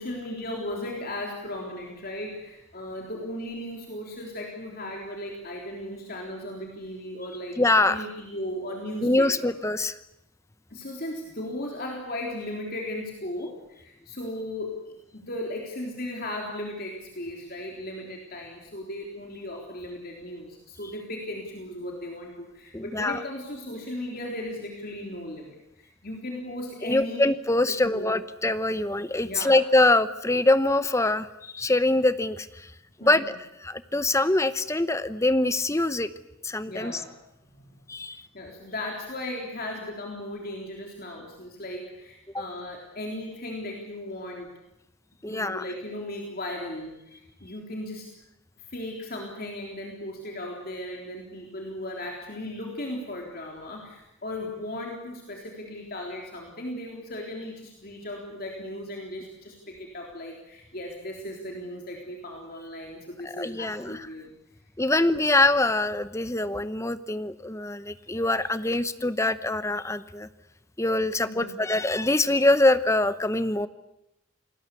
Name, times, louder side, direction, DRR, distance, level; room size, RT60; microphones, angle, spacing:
voice 1, 0.0-9.5 10.7-14.8 15.1-27.2 27.7-28.2 29.2-29.7 33.0-33.3 36.7-37.1 37.5-37.6 38.3-44.5 45.3-48.1 48.7-64.3 64.9-65.1 71.3-71.6, left 1 dB, 45° left, 0 dB, 3.6 m, -36 dB
voice 2, 7.6-8.0 9.0-10.0 22.7-23.2 26.8-32.7 33.0-36.1 36.4-37.0 37.9-38.2 42.3-42.4 45.2-45.6 63.2-64.1 64.8-70.3 70.8-73.7, left 2 dB, 15° left, 13 dB, 0.9 m, -24 dB
28.5 x 20.0 x 8.4 m, 0.87 s
head